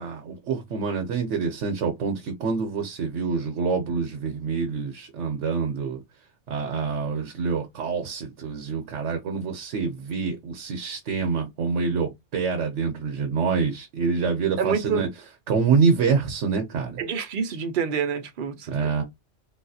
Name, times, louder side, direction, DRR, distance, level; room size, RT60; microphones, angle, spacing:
voice 1, 0.0-6.0 6.5-15.1 15.5-17.0 18.7-19.0, right 5 dB, 80° right, 1.1 m, -26 dB
voice 2, 14.6-15.0 17.0-18.9, right 6 dB, 55° right, 0.7 m, -27 dB
3.7 x 2.4 x 2.6 m
omnidirectional pair, 1.2 m